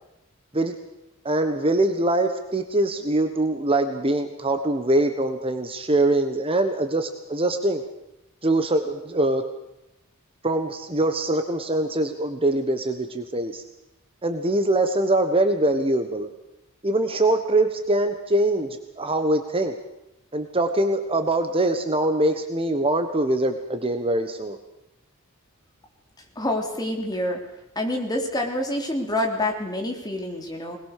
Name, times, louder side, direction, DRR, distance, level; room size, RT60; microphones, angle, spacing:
voice 1, 1.2-7.8 8.4-9.4 10.4-13.6 14.2-16.3 16.8-19.7 20.3-24.6, right 1 dB, 25° right, 7 dB, 1.3 m, -23 dB
voice 2, 26.4-27.4 27.8-30.8, left 1 dB, 20° left, 2 dB, 3.5 m, -27 dB
21.5 x 20.5 x 6.7 m, 0.91 s
head